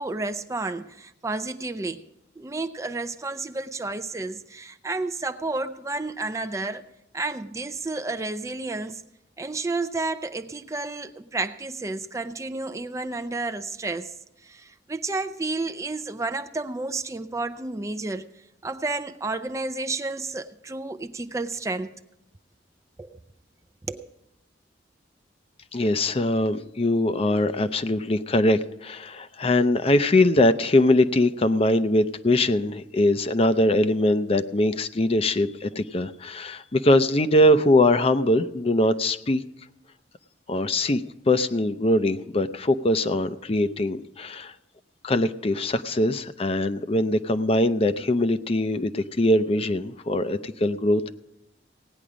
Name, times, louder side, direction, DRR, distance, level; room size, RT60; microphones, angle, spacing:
voice 1, 0.0-2.0 2.4-6.9 7.1-9.0 9.4-14.2 14.4-18.3 18.6-21.9 23.0-23.2 23.9-24.1, right 3 dB, 15° right, 0.4 m, -31 dB
voice 2, 25.7-39.4 40.5-44.5 45.0-51.1, left 1 dB, 35° left, 0.5 m, -22 dB
17.0 x 9.7 x 5.0 m
head